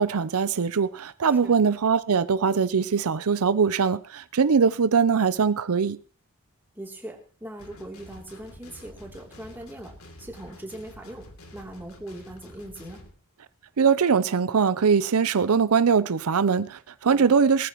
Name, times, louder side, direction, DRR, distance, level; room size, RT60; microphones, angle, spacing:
voice 1, 0.0-6.0 13.8-17.7, right 6 dB, 90° right, 0.6 m, -22 dB
voice 2, 6.7-13.0 17.1-17.4, right 1 dB, 10° right, 3.1 m, -40 dB
sound 1, 7.6-13.1, left 1 dB, 85° left, 2.9 m, -48 dB
20.0 x 14.0 x 3.0 m
head